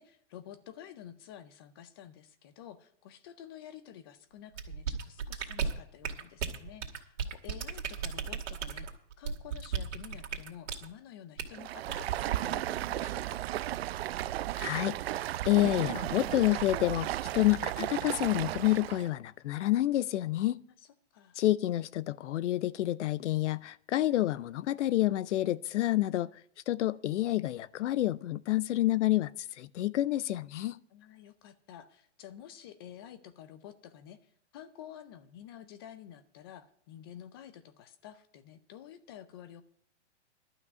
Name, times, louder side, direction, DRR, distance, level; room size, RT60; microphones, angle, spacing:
voice 1, 0.0-8.9 9.2-13.4 20.8-21.4 30.9-34.2 34.5-39.6, left 10 dB, 20° left, 0.4 m, -50 dB
sound 1, 4.5-10.9 11.4-11.6 11.9-12.1, right 6 dB, 90° right, 2.3 m, -35 dB
Stream, 11.5-19.1, right 14 dB, 60° right, 0.5 m, -34 dB
voice 2, 14.6-15.0 15.4-20.6 21.4-26.3 26.7-30.8, left 15 dB, 80° left, 0.6 m, -28 dB
12.0 x 5.9 x 9.3 m
hypercardioid pair, 160°, 35 cm